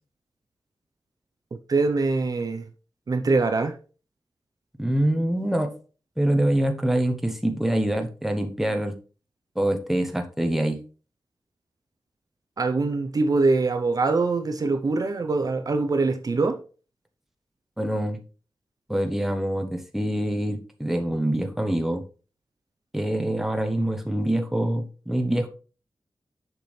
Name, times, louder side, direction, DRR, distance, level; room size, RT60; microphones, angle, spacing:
voice 1, 1.5-2.6 3.1-3.8 12.6-16.6, right 3 dB, 50° right, 0.7 m, -23 dB
voice 2, 4.8-5.7 6.2-8.9 9.6-10.8 17.8-18.2 18.9-22.0 22.9-25.5, right 1 dB, 5° right, 0.9 m, -25 dB
6.7 x 6.1 x 3.2 m
wide cardioid pair, 110°, 8 cm